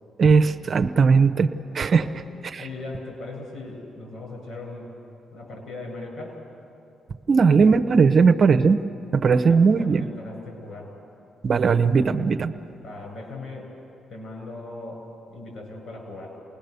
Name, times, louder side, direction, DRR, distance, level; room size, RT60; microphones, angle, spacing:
voice 1, 0.2-1.5 1.7-2.1 2.5-2.6 7.3-8.8 9.1-10.1 11.4-12.5, right 5 dB, 50° right, 8 dB, 0.9 m, -18 dB
voice 2, 2.6-5.0 5.3-6.4 9.5-10.9 12.8-13.7 14.1-16.4, left 2 dB, 65° left, 2 dB, 7.9 m, -38 dB
29.0 x 19.5 x 6.9 m, 2.7 s
supercardioid pair, 65°, 0 cm